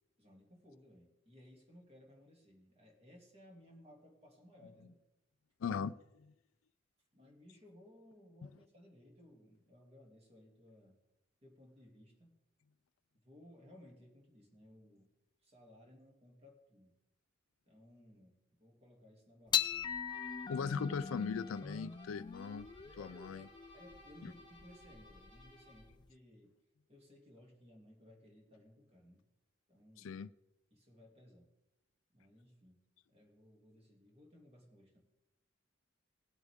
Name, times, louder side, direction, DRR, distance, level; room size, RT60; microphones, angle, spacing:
voice 1, 0.2-5.0 7.1-11.0 11.4-12.4 13.1-15.1 15.4-17.0 17.7-19.9 23.7-26.5 26.9-29.2 29.7-30.2 30.7-31.5 32.1-32.8 33.1-35.0, left 1 dB, 30° right, 0 dB, 2.6 m, -60 dB
voice 2, 5.6-6.3 20.5-22.7 23.0-23.5 24.2-24.3 30.0-30.3, left 6 dB, 90° left, 15 dB, 0.4 m, -39 dB
sound 1, 19.5-26.1, left 8 dB, 20° left, 0.4 m, -40 dB
sound 2, 20.1-26.0, equal, 85° right, 3.8 m, -60 dB
19.5 x 8.0 x 3.6 m, 0.90 s
head